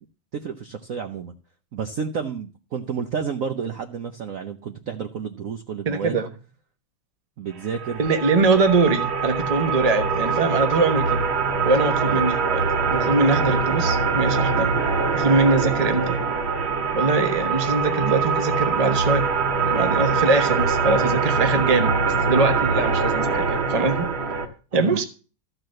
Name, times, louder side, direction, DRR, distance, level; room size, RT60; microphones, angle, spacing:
voice 1, 0.3-1.3 1.7-6.2 7.4-8.0 12.0-12.3 24.8-25.0, right 6 dB, 55° right, 1.0 m, -31 dB
voice 2, 5.9-6.3 8.0-11.3 11.6-14.8 15.1-16.2 16.9-19.2 19.6-21.9 22.3-24.1 24.7-25.0, right 3 dB, 25° right, 1.0 m, -22 dB
sound 1, 7.7-24.5, right 4 dB, 85° right, 2.6 m, -23 dB
14.0 x 4.8 x 7.7 m
omnidirectional pair, 2.2 m